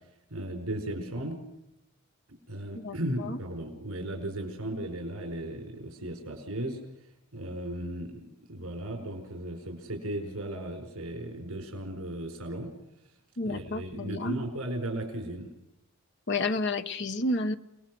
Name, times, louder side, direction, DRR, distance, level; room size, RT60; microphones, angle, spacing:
voice 1, 0.3-1.4 2.5-6.8 7.3-12.7 13.4-15.5, right 1 dB, 75° right, 5 dB, 5.0 m, -36 dB
voice 2, 2.7-3.4 13.4-14.4 16.3-17.5, left 2 dB, 50° left, 9 dB, 1.2 m, -31 dB
29.5 x 20.0 x 6.3 m, 0.84 s
head